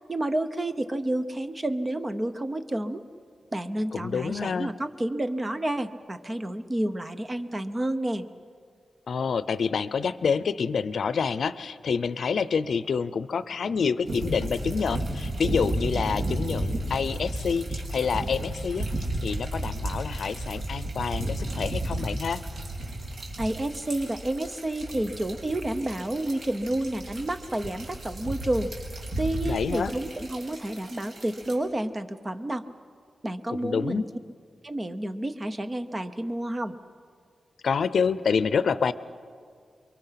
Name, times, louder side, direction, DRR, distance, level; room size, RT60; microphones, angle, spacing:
voice 1, 0.1-3.0 3.5-8.3 23.4-28.7 29.2-32.6 33.2-34.0 34.6-36.7, right 1 dB, 25° right, 10 dB, 0.9 m, -30 dB
voice 2, 3.9-4.7 9.1-18.9 19.2-22.4 29.4-29.9 33.5-34.0 37.6-38.9, left 6 dB, 75° left, 15 dB, 0.6 m, -27 dB
sound 1, 14.1-31.5, right 1 dB, 70° right, 4.4 m, -33 dB
29.0 x 23.0 x 5.8 m, 2.1 s
wide cardioid pair, 145°, 0 cm